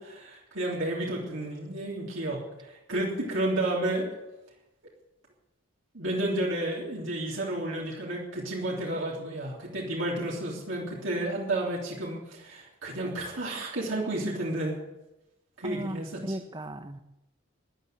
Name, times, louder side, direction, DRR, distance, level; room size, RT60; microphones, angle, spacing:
voice 1, 0.0-4.1 5.9-14.8 15.6-16.4, right 1 dB, 70° right, -4 dB, 3.4 m, -31 dB
voice 2, 15.6-17.0, right 1 dB, 20° right, 9 dB, 0.9 m, -37 dB
14.0 x 11.0 x 7.8 m, 0.94 s
head